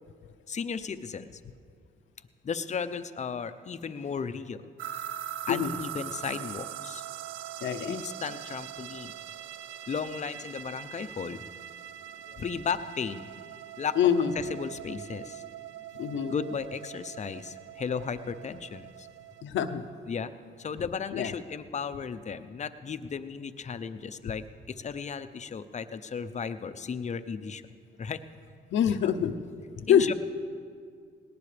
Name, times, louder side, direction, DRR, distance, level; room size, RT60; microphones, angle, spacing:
voice 1, 0.5-1.4 2.4-4.6 5.5-7.0 7.9-9.1 9.9-11.4 12.4-13.3 13.8-14.0 14.3-15.4 16.3-19.1 20.1-20.3 20.6-27.6 28.0-28.2 29.0-29.1 29.9-30.1, left 6 dB, 35° left, 11 dB, 0.7 m, -35 dB
sound 1, 4.8-19.4, right 11 dB, 90° right, 0.5 m, -42 dB
voice 2, 7.6-8.0 12.3-12.4 14.0-14.3 15.9-16.3 19.4-19.8 21.1-21.3 28.7-29.4 29.8-30.1, left 9 dB, 70° left, 8 dB, 0.7 m, -25 dB
19.0 x 18.0 x 3.4 m, 2.2 s
cardioid pair, 90°, 20 cm